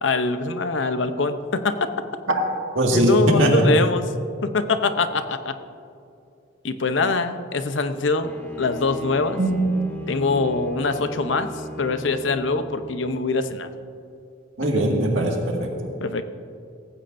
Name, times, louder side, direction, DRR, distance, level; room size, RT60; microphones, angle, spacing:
voice 1, 0.0-1.8 2.9-4.0 4.4-5.6 6.6-9.4 10.1-11.5 11.8-13.7 14.6-14.7 16.0-16.2, left 3 dB, 65° left, 9 dB, 0.8 m, -23 dB
voice 2, 2.8-3.7 9.4-9.7 14.6-15.9, right 1 dB, 80° right, 0 dB, 2.0 m, -20 dB
Bowed string instrument, 8.2-13.0, equal, 10° left, 1.7 m, -36 dB
18.0 x 15.5 x 2.6 m, 2.6 s
head